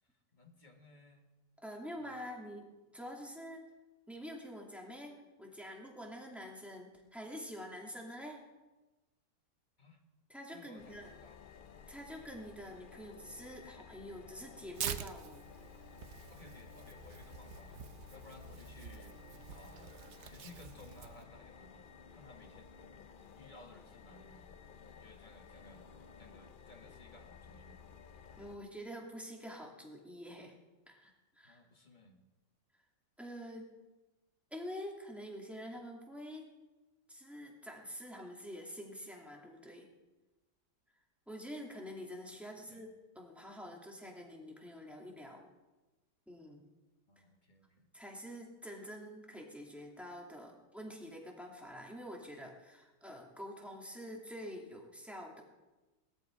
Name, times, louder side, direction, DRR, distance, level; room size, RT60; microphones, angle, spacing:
voice 1, 0.3-1.3 2.0-2.4 9.8-10.0 10.5-11.5 16.3-17.8 18.1-19.2 19.5-23.0 23.3-24.6 24.9-27.8 31.4-32.2 42.6-42.9 47.1-47.9, left 2 dB, 30° left, 3 dB, 1.7 m, -58 dB
voice 2, 1.6-3.6 4.1-8.4 10.3-11.1 11.9-15.5 26.2-26.3 28.4-30.6 30.9-31.6 33.2-33.7 34.5-36.5 37.1-39.9 41.3-42.9 43.1-45.4 46.3-46.6 47.9-55.4, equal, ahead, -1 dB, 2.5 m, -47 dB
sound 1, 10.8-28.6, left 6 dB, 75° left, 0.4 m, -55 dB
Tearing, 14.7-21.2, right 8 dB, 55° right, 0.8 m, -46 dB
19.0 x 13.0 x 4.7 m, 1.1 s
omnidirectional pair, 1.8 m